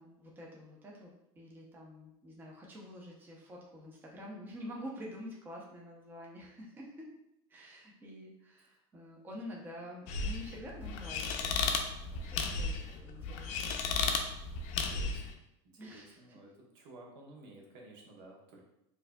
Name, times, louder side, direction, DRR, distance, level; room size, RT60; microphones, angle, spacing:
voice 1, 0.0-7.1 7.5-11.6 12.3-13.7 15.8-16.4, equal, 15° right, -2 dB, 0.6 m, -48 dB
sound 1, 10.1-15.3, left 4 dB, 55° left, 0.5 m, -34 dB
voice 2, 11.9-12.3 14.9-15.4 15.9-16.5 16.7-18.6, right 2 dB, 70° right, -1 dB, 1.0 m, -54 dB
4.6 x 2.6 x 2.2 m, 0.84 s
supercardioid pair, 145°, 14 cm